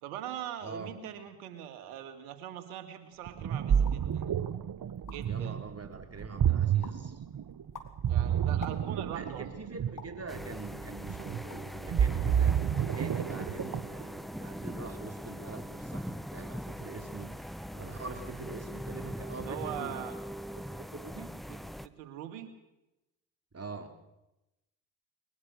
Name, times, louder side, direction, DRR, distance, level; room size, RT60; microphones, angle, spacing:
voice 1, 0.0-4.3 5.1-5.6 8.1-9.5 19.4-20.1 21.5-22.5, right 10 dB, 90° right, 8 dB, 2.3 m, -42 dB
voice 2, 0.6-0.9 5.2-7.2 9.1-20.1 20.6-21.4 23.5-24.0, right 4 dB, 35° right, 6 dB, 4.4 m, -44 dB
Ocean, 3.3-14.0, right 8 dB, 50° right, 1.3 m, -30 dB
sound 1, 3.8-4.1 4.6-4.7 4.9-5.4 5.9-6.4 6.8-7.1 7.5-9.2 10.0-10.3 10.9-11.8 12.2-12.4 12.7-13.2 13.5-14.0, left 4 dB, 45° left, 3.7 m, -49 dB
sound 2, 10.3-21.9, equal, ahead, 1.2 m, -41 dB
21.5 x 20.5 x 6.6 m, 0.92 s
hypercardioid pair, 45°, 44 cm